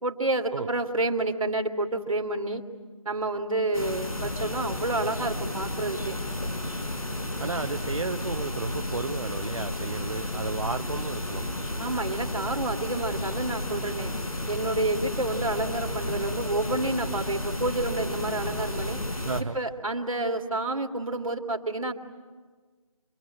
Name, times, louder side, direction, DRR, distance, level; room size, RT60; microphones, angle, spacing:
voice 1, 0.0-2.6 3.0-6.2 11.8-14.1 14.5-19.0 19.5-21.9, right 2 dB, 70° right, 4 dB, 2.6 m, -29 dB
sound 1, 3.7-19.4, left 1 dB, 85° left, 5.1 m, -32 dB
voice 2, 7.4-11.4 19.2-19.6, right 3 dB, 55° right, 7 dB, 0.7 m, -32 dB
26.5 x 22.5 x 9.0 m, 1.4 s
figure-of-eight pair, 165°, 18 cm